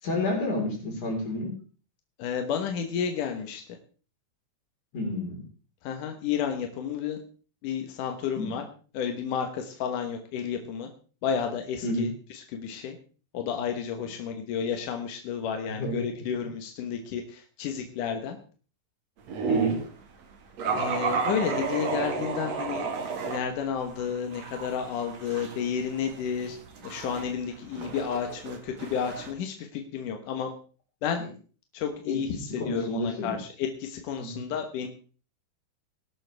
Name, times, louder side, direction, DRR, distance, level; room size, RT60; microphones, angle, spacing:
voice 1, 0.0-1.6 4.9-5.4 8.4-8.5 11.8-12.1 15.6-16.1 19.5-19.8 32.1-32.2 32.6-33.4 34.2-34.4, left 1 dB, 45° left, 0 dB, 5.5 m, -30 dB
voice 2, 2.2-3.6 5.8-7.2 7.6-8.6 8.9-10.9 11.2-13.0 13.3-18.4 20.7-22.9 23.2-26.6 26.8-30.5 31.0-31.3 31.7-34.9, left 7 dB, 65° left, 4 dB, 2.2 m, -31 dB
sound 1, 19.3-19.9 20.6-23.4 23.8-29.3, right 5 dB, 50° right, 2.3 m, -32 dB
19.5 x 12.0 x 3.5 m, 0.39 s
omnidirectional pair, 5.1 m